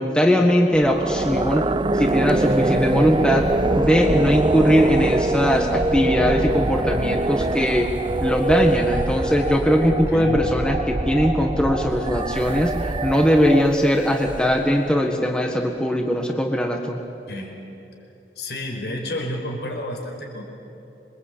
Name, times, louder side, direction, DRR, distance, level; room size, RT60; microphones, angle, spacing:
voice 1, 0.0-3.5 3.8-7.9 8.2-17.0, equal, 5° left, 2 dB, 1.5 m, -20 dB
sound 1, 0.7-14.8, right 2 dB, 25° right, 0.6 m, -24 dB
voice 2, 9.9-10.5 17.3-17.6 18.4-20.4, left 1 dB, 70° left, 1 dB, 5.2 m, -30 dB
27.0 x 23.0 x 8.6 m, 3.0 s
head